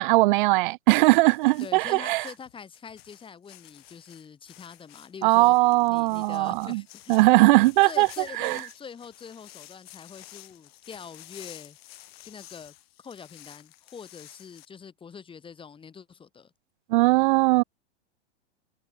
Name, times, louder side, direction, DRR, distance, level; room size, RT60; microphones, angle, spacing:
voice 1, 0.0-2.3 5.2-6.8 7.1-8.1 8.4-8.6 16.9-17.6, right 22 dB, 50° right, 0.6 m, -20 dB
sound 1, 1.3-14.7, left 16 dB, 60° left, 7.6 m, -51 dB
voice 2, 1.6-7.3 7.8-11.8 12.2-12.7 13.0-16.5, left 6 dB, 15° left, 3.2 m, -44 dB
hypercardioid pair, 130°, 33 cm